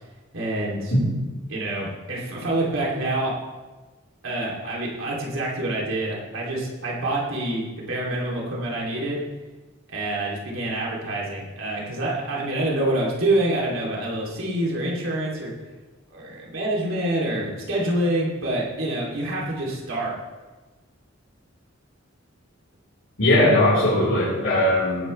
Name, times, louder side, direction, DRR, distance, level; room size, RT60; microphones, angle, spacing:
voice 1, 0.3-0.9 1.5-3.3 4.2-9.2 9.9-15.5 16.1-20.1, right 1 dB, 80° right, -4 dB, 3.1 m, -26 dB
voice 2, 23.2-25.1, left 1 dB, 70° left, -10 dB, 4.3 m, -19 dB
19.0 x 11.0 x 3.3 m, 1.2 s
head